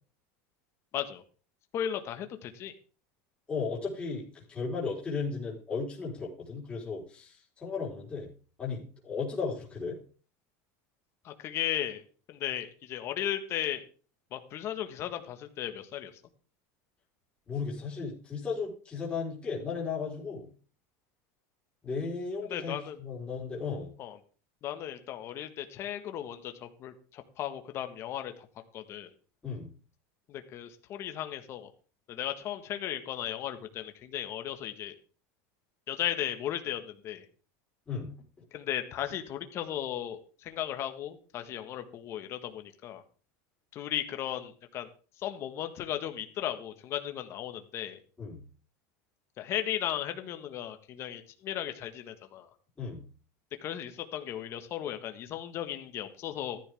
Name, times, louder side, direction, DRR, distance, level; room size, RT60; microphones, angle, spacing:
voice 1, 1.7-2.7 11.2-12.0 12.3-13.8 14.3-16.1 22.5-23.0 24.0-24.2 24.6-28.5 28.7-29.1 30.3-31.7 32.1-34.9 35.9-37.2 38.5-43.0 43.7-44.9 45.2-48.0 49.4-52.5 53.6-56.6, left 11 dB, 35° left, 7 dB, 1.5 m, -36 dB
voice 2, 3.5-8.3 8.6-10.0 17.5-20.5 21.8-23.9 29.4-29.7 37.9-38.1 48.2-48.4 52.8-53.0, left 5 dB, 15° left, -5 dB, 4.4 m, -35 dB
14.5 x 10.5 x 3.6 m, 0.38 s
supercardioid pair, 160°, 8 cm